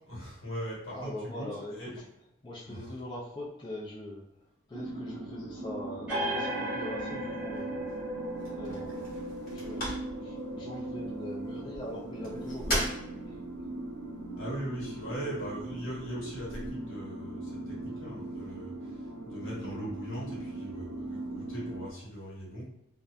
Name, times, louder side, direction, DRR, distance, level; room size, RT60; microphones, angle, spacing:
voice 1, 0.1-1.9 2.7-2.9 14.4-22.6, right 1 dB, 70° left, -5 dB, 1.1 m, -40 dB
voice 2, 0.9-1.8 2.4-4.2 4.7-7.8 8.5-13.4, left 1 dB, 20° left, -6 dB, 0.3 m, -42 dB
sound 1, 4.7-21.9, right 2 dB, 90° right, 0.4 m, -40 dB
sound 2, 6.1-13.3, equal, 5° right, 0.8 m, -38 dB
sound 3, 6.7-16.7, equal, 40° left, 0.9 m, -41 dB
2.6 x 2.0 x 2.4 m, 0.81 s
head